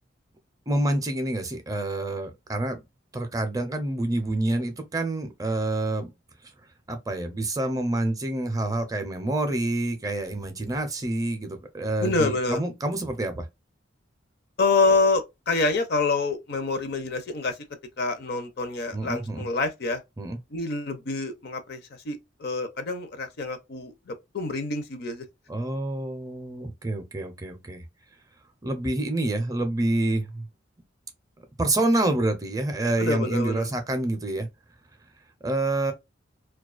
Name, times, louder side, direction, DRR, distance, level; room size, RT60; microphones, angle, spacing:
voice 1, 0.7-2.8 3.1-6.1 6.9-13.4 18.9-19.4 20.2-20.4 25.5-27.8 28.6-30.5 31.6-34.5 35.4-35.9, right 2 dB, 20° right, 0.4 m, -27 dB
voice 2, 12.0-12.6 14.6-17.6 18.0-20.0 20.5-25.3 33.0-33.7, left 3 dB, 55° left, 0.5 m, -27 dB
2.3 x 2.2 x 2.3 m
head